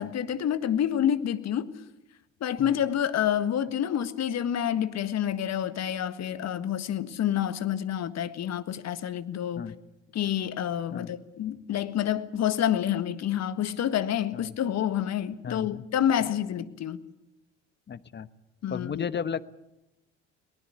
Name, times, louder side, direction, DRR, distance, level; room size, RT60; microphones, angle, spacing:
voice 1, 0.0-1.7 2.4-9.7 10.1-17.0 18.6-19.1, left 10 dB, 45° left, 1.6 m, -28 dB
voice 2, 15.4-15.8 16.2-16.3 17.9-18.3 18.7-19.4, left 7 dB, 30° left, 1.1 m, -34 dB
22.5 x 19.5 x 8.3 m
figure-of-eight pair, 60°, 37 cm